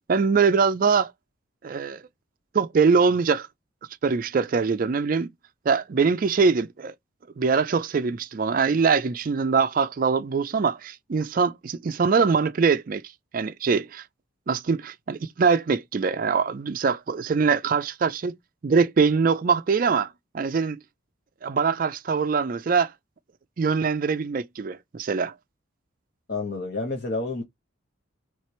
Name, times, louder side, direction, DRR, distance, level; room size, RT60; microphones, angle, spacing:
voice 1, 0.1-1.1 1.6-2.0 2.5-3.5 4.0-5.3 5.7-6.9 7.4-13.0 13.3-14.0 14.5-18.4 18.6-20.8 21.4-22.9 23.6-25.3, right 5 dB, 45° right, 0.4 m, -23 dB
voice 2, 26.3-27.4, left 3 dB, 50° left, 0.9 m, -29 dB
3.2 x 3.2 x 4.2 m
head